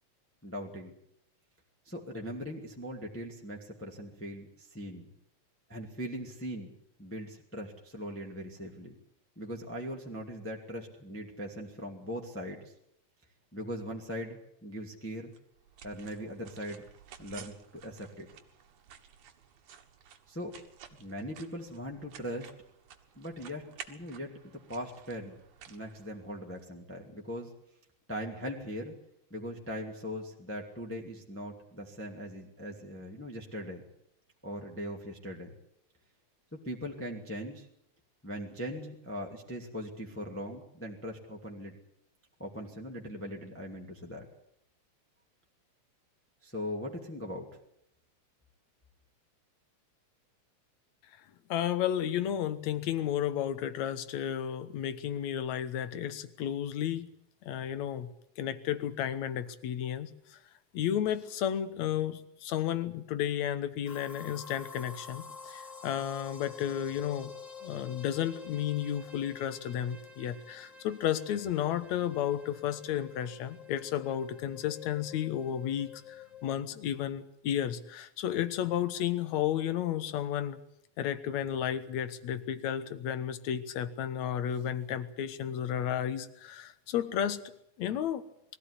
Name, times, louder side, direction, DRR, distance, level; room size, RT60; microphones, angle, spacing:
voice 1, 0.4-0.9 1.9-5.1 5.7-6.7 7.0-8.9 9.4-12.7 13.5-15.3 15.8-16.8 17.2-18.3 20.3-20.5 21.0-22.5 23.2-24.3 24.7-25.4 25.7-27.5 28.1-28.9 29.3-33.8 34.4-35.5 36.5-37.7 38.2-41.8 42.4-44.3 46.4-47.5, equal, 5° left, 0 dB, 2.0 m, -40 dB
sound 1, 15.3-26.6, right 8 dB, 85° right, 3.0 m, -53 dB
voice 2, 51.5-57.1 57.5-58.1 58.4-60.4 60.7-67.3 67.6-80.6 81.0-87.4 87.8-88.2, left 10 dB, 75° left, 13 dB, 2.4 m, -32 dB
sound 2, 63.9-76.5, left 6 dB, 30° left, 2.3 m, -49 dB
21.5 x 14.5 x 9.8 m, 0.76 s
omnidirectional pair, 3.3 m